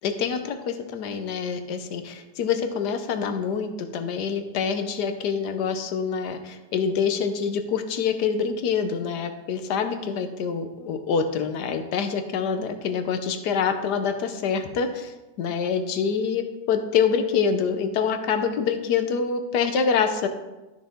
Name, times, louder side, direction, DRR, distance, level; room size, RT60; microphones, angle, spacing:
voice 1, 0.0-20.3, left 6 dB, 80° left, 7 dB, 1.4 m, -26 dB
12.5 x 6.1 x 3.6 m, 1.1 s
omnidirectional pair, 1.7 m